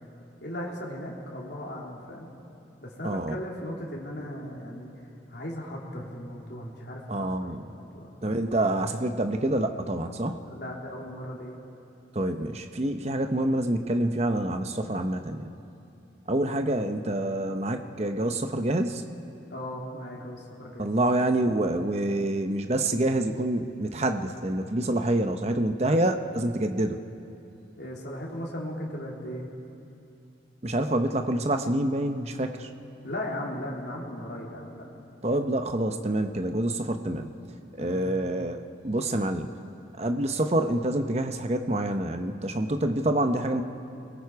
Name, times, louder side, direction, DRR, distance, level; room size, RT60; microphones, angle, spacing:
voice 1, 0.4-2.3 2.8-4.9 5.3-7.3 7.6-8.4 10.4-11.6 16.7-16.9 19.5-20.9 27.8-29.5 33.0-34.9 37.8-38.2, left 1 dB, 65° left, -3 dB, 3.3 m, -37 dB
voice 2, 3.0-3.3 7.1-7.6 8.2-10.4 12.1-15.5 16.3-19.0 20.8-27.0 30.6-32.7 35.2-37.3 37.8-39.5 40.0-43.6, right 1 dB, 35° right, 6 dB, 0.8 m, -27 dB
29.0 x 21.0 x 4.7 m, 2.8 s
head